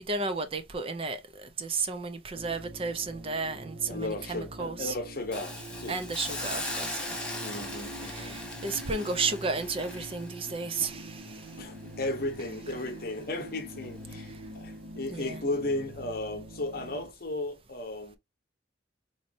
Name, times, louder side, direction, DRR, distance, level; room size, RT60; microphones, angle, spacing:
voice 1, 0.1-5.0 5.9-7.2 8.0-11.5 12.4-12.8 15.1-15.4, right 4 dB, 30° right, 0.5 m, -33 dB
sound 1, 2.3-17.1, right 1 dB, 60° right, 1.6 m, -44 dB
voice 2, 3.9-6.0 7.4-8.4 11.6-18.2, left 2 dB, 50° left, 1.0 m, -35 dB
Hiss, 5.3-12.4 12.7-12.9, left 1 dB, 5° left, 0.9 m, -40 dB
4.2 x 3.1 x 2.6 m
head